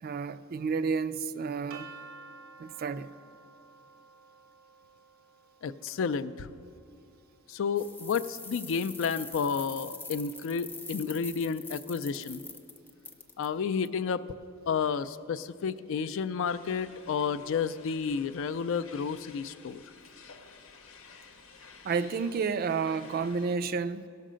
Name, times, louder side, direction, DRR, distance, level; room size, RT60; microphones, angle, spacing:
voice 1, 0.0-1.9 2.6-3.1 21.8-24.1, right 5 dB, 45° right, 0.3 m, -31 dB
sound 1, 1.7-7.6, right 4 dB, 85° right, 0.8 m, -53 dB
voice 2, 5.6-6.5 7.5-12.4 13.4-14.2 14.7-19.8, left 6 dB, 65° left, 0.4 m, -31 dB
sound 2, 7.8-13.5, left 3 dB, 10° left, 0.6 m, -44 dB
sound 3, 16.5-23.6, left 5 dB, 85° left, 0.9 m, -53 dB
17.0 x 6.5 x 5.0 m
head